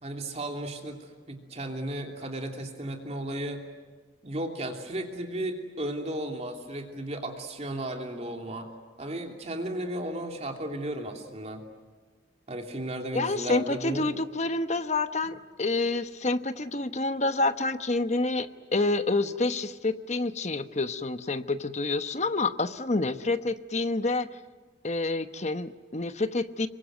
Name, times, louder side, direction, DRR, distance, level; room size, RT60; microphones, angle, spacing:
voice 1, 0.0-3.6 4.2-8.7 9.0-11.6 12.5-14.2, right 1 dB, 35° right, 3 dB, 3.0 m, -34 dB
voice 2, 13.1-24.3 24.8-26.7, left 2 dB, 40° left, 10 dB, 1.1 m, -28 dB
26.5 x 23.5 x 9.3 m, 1.4 s
head